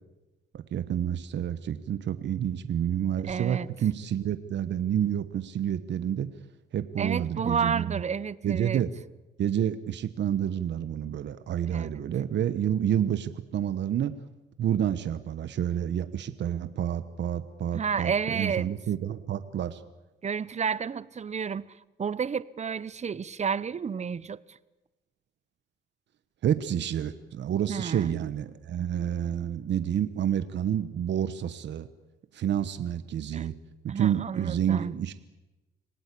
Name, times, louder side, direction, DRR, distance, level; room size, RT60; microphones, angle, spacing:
voice 1, 0.5-6.3 6.7-7.9 8.4-8.9 9.4-14.1 14.6-19.8 26.4-31.9 32.3-33.5 33.8-35.1, right 10 dB, 65° right, 1.2 m, -29 dB
voice 2, 3.3-3.7 7.0-8.8 11.7-12.0 17.7-18.7 20.2-21.6 22.0-24.6 27.7-28.2 33.3-33.5 33.9-34.9, right 6 dB, 35° right, 0.8 m, -31 dB
27.0 x 18.0 x 8.5 m
cardioid pair, 90°, 20 cm